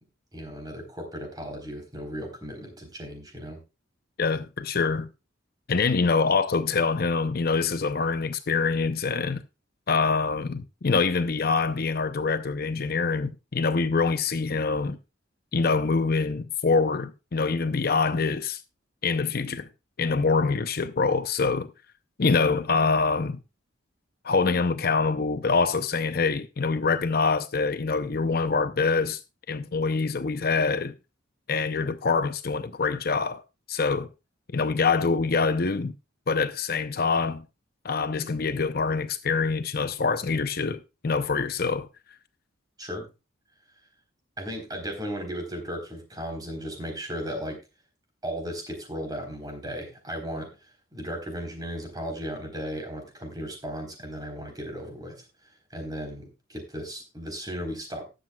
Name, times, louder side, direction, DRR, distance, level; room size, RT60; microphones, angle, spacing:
voice 1, 0.3-3.6 42.8-43.0 44.4-47.6 48.2-50.5 50.9-55.1 55.7-58.1, equal, 20° right, 4.0 m, -35 dB
voice 2, 4.2-5.1 5.7-9.4 9.9-15.0 15.5-18.6 19.0-19.7 20.0-21.7 22.2-23.4 24.2-29.2 29.5-30.9 31.5-33.4 33.7-34.1 34.5-35.9 36.3-37.4 37.8-41.9, left 4 dB, 50° left, 0.6 m, -25 dB
19.5 x 7.7 x 2.3 m
head